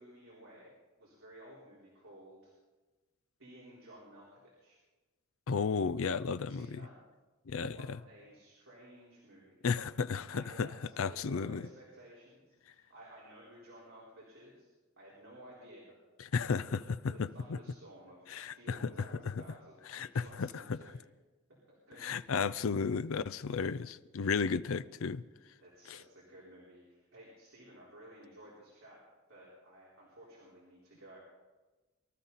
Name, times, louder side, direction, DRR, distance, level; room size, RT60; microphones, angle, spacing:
voice 1, 0.0-2.5 3.4-4.8 6.2-7.0 7.6-9.7 10.3-14.7 15.0-16.0 16.7-16.8 17.1-20.9 21.7-22.2 25.6-29.0 29.3-31.2, right 1 dB, 70° right, 4.2 m, -55 dB
voice 2, 5.5-6.8 7.5-8.0 9.6-10.7 11.0-11.6 16.3-17.3 18.3-18.9 19.9-20.8 22.0-25.2 25.9-26.0, left 5 dB, 70° left, 0.5 m, -33 dB
23.5 x 13.0 x 4.1 m
head